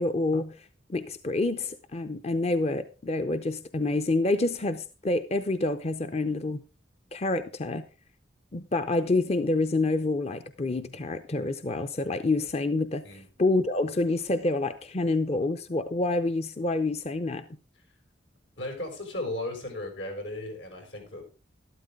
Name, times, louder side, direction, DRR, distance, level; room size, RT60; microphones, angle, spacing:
voice 1, 0.0-6.6 7.1-7.9 8.5-17.4, left 2 dB, 35° left, 0.6 m, -28 dB
voice 2, 18.6-21.2, left 1 dB, 85° left, 6.3 m, -35 dB
12.5 x 12.5 x 3.6 m
head